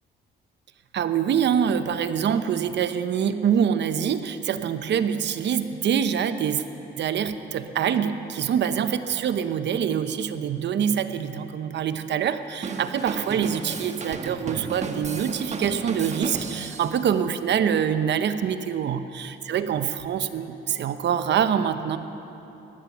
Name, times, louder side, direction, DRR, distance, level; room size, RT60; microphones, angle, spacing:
voice 1, 0.9-6.6 7.0-22.0, right 8 dB, 65° right, 10 dB, 0.8 m, -25 dB
Drum kit / Drum, 12.6-17.0, right 4 dB, 35° right, 1.2 m, -33 dB
15.5 x 10.5 x 7.2 m, 3.0 s
cardioid pair, 90°, 20 cm